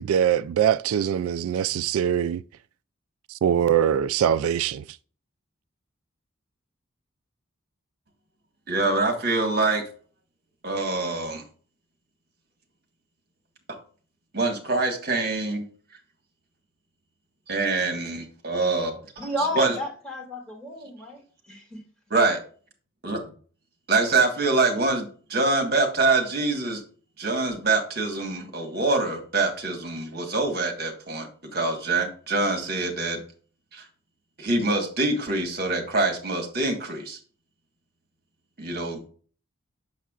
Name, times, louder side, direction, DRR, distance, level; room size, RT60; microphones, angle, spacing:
voice 1, 0.0-2.4 3.4-4.8, right 9 dB, 90° right, 0.3 m, -22 dB
voice 2, 8.7-9.8 10.6-11.4 14.3-15.6 17.5-19.0 19.5-19.7 22.1-22.4 23.0-23.2 23.9-26.8 27.2-33.2 33.7-33.8 34.4-37.2 38.6-39.0, right 3 dB, 50° right, 1.5 m, -25 dB
voice 3, 19.2-21.8, left 1 dB, 5° left, 2.1 m, -32 dB
7.2 x 6.6 x 2.4 m
head